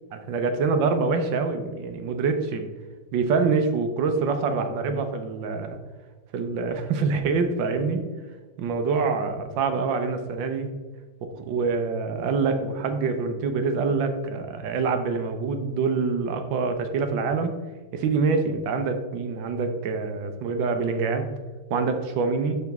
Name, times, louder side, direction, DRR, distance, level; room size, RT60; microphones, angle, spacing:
voice 1, 0.1-2.7 3.1-5.8 6.3-8.1 8.6-10.7 11.2-17.6 17.9-21.2 21.7-22.6, right 4 dB, 85° right, 7 dB, 1.6 m, -25 dB
11.5 x 4.1 x 3.5 m, 1.3 s
omnidirectional pair, 2.0 m